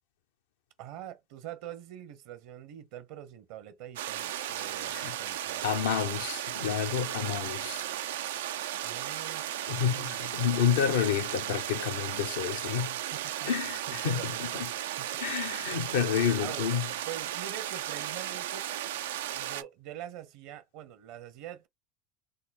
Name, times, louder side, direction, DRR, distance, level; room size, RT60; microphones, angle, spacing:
voice 1, 0.8-5.7 8.8-10.3 13.1-13.5 13.9-14.6 15.0-15.2 15.7-15.8 16.4-16.7 17.1-18.7 19.3-21.7, right 11 dB, 65° right, 0.9 m, -44 dB
sound 1, 4.0-19.6, right 12 dB, 85° right, 0.3 m, -35 dB
voice 2, 4.6-5.2 5.6-7.9 9.7-13.0 13.4-14.7 15.2-16.9, left 8 dB, 85° left, 0.8 m, -30 dB
3.8 x 2.0 x 4.1 m
hypercardioid pair, 90°, 0 cm